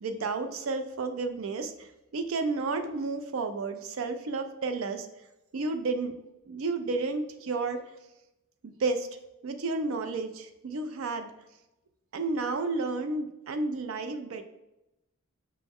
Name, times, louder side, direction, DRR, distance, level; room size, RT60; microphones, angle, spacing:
voice 1, 0.0-5.1 5.5-6.1 6.5-7.8 8.6-9.1 9.4-11.3 12.1-14.4, right 3 dB, 65° right, 7 dB, 0.4 m, -31 dB
5.3 x 2.1 x 3.5 m, 0.91 s
head